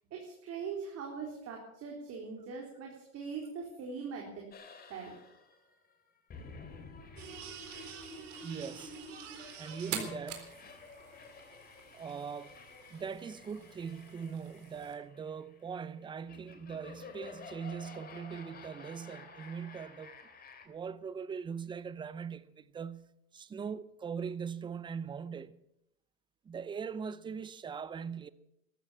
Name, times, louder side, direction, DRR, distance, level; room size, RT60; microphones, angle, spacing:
voice 1, 0.1-4.4 4.9-5.1, right 5 dB, 35° right, 4.2 m, -41 dB
sound 1, 4.5-20.7, left 4 dB, 20° left, 2.7 m, -51 dB
sound 2, 7.2-14.9, right 8 dB, 55° right, 4.0 m, -46 dB
voice 2, 8.4-9.0 9.6-10.6 11.9-12.5 12.9-20.2 20.7-25.6 26.4-28.3, right 6 dB, 10° right, 0.6 m, -41 dB
13.5 x 13.5 x 7.1 m
hypercardioid pair, 115°, 44 cm